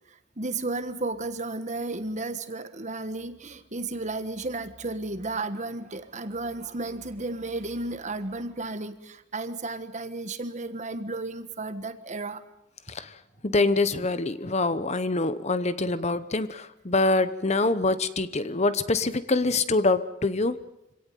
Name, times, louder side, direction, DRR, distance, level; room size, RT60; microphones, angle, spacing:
voice 1, 0.4-12.4, right 2 dB, 35° right, 11 dB, 1.4 m, -33 dB
voice 2, 13.4-20.5, left 3 dB, 35° left, 13 dB, 1.0 m, -25 dB
26.0 x 17.5 x 9.4 m, 0.90 s
head